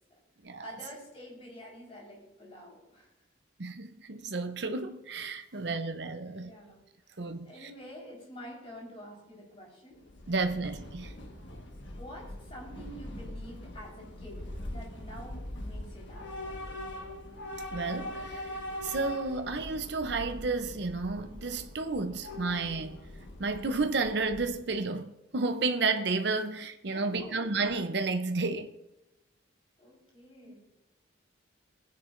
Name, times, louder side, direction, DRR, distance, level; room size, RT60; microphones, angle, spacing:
voice 1, 0.6-3.1 5.5-5.7 6.2-10.0 10.5-10.6 12.0-16.4 26.9-27.5 29.8-30.6, equal, 30° left, 4.4 m, -48 dB
voice 2, 3.6-6.5 7.2-7.7 10.3-11.1 17.7-18.5 18.8-23.0 23.4-28.7 30.4-30.5, right 3 dB, 60° right, 0.7 m, -32 dB
Train / Subway metro underground, 10.0-24.8, left 1 dB, 70° left, 1.5 m, -42 dB
18.5 x 9.9 x 2.6 m
head